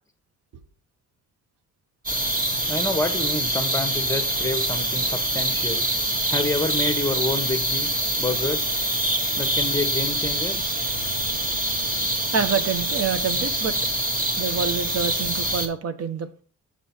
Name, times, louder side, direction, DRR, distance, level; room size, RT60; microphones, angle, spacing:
sound 1, 2.1-15.7, right 1 dB, 30° right, 1.7 m, -25 dB
voice 1, 2.7-5.9 6.3-7.9 8.2-8.7 9.4-10.6, left 2 dB, 10° left, 6 dB, 1.2 m, -28 dB
voice 2, 12.3-13.7 14.4-16.4, right 6 dB, 55° right, 11 dB, 1.1 m, -27 dB
7.0 x 6.6 x 4.4 m, 0.41 s
cardioid pair, 90°, 30 cm